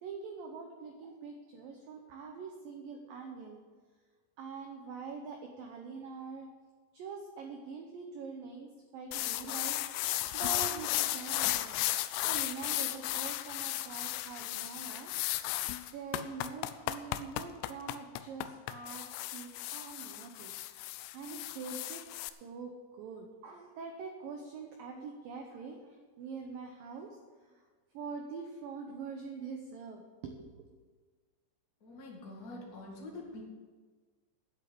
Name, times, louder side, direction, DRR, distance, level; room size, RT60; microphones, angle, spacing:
voice 1, 0.0-3.6 4.4-6.5 6.9-11.8 12.2-15.1 15.9-27.6 27.9-30.7, right 5 dB, 90° right, 3 dB, 2.0 m, -44 dB
sound 1, 9.1-22.3, left 15 dB, 85° left, 2.5 m, -35 dB
voice 2, 31.8-33.4, left 2 dB, 50° left, -3 dB, 1.1 m, -45 dB
9.6 x 8.1 x 8.5 m, 1.5 s
omnidirectional pair, 5.4 m